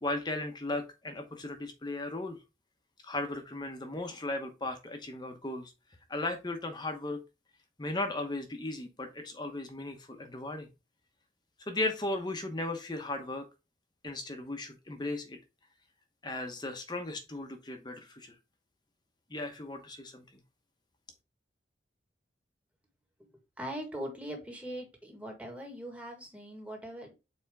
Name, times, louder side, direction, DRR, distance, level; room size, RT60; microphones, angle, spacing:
voice 1, 0.0-2.4 3.0-5.7 6.1-7.2 7.8-10.7 11.6-13.5 14.0-15.4 16.2-18.3 19.3-20.2, left 2 dB, 25° left, 6 dB, 0.9 m, -36 dB
voice 2, 23.6-27.1, equal, 5° right, 2 dB, 1.7 m, -41 dB
6.9 x 4.3 x 3.5 m, 0.26 s
head